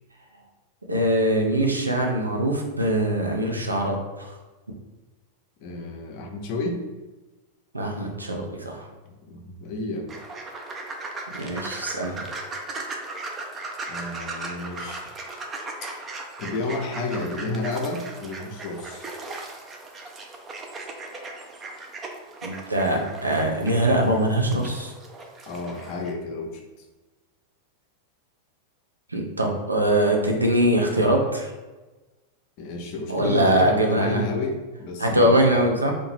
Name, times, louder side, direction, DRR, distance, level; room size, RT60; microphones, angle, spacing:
voice 1, 0.9-4.4 7.7-8.9 11.3-12.2 22.4-24.9 29.1-31.5 33.1-34.2 35.0-35.9, right 1 dB, 80° right, 1 dB, 0.4 m, -22 dB
voice 2, 5.6-6.8 9.1-10.1 13.9-15.1 16.4-19.1 25.5-26.6 32.6-35.3, left 2 dB, 45° left, 2 dB, 0.5 m, -31 dB
sound 1, 10.1-26.1, right 2 dB, 20° right, 0.4 m, -37 dB
2.7 x 2.1 x 3.0 m, 1.2 s
figure-of-eight pair, 90°, 0 cm